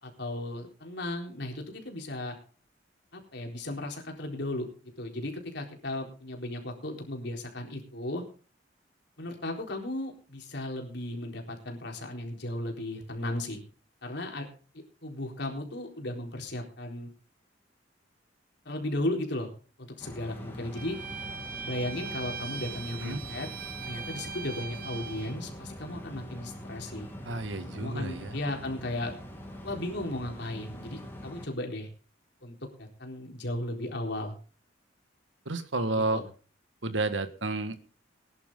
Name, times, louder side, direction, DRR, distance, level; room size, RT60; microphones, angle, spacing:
voice 1, 0.0-2.3 3.1-4.7 5.0-8.2 9.2-13.6 14.0-14.5 14.7-17.1 18.7-19.5 19.8-21.0 21.6-23.5 23.8-27.1 27.7-29.1 29.6-31.9 32.4-34.4 35.9-36.2, left 1 dB, 65° left, 2 dB, 4.0 m, -35 dB
sound 1, 20.0-31.5, equal, 10° left, 3.1 m, -44 dB
Bowed string instrument, 20.7-25.4, right 6 dB, 50° right, 1.3 m, -40 dB
voice 2, 27.2-28.4 35.4-36.2 36.8-37.8, right 2 dB, 80° right, 11 dB, 1.6 m, -31 dB
20.0 x 11.0 x 3.8 m, 0.38 s
head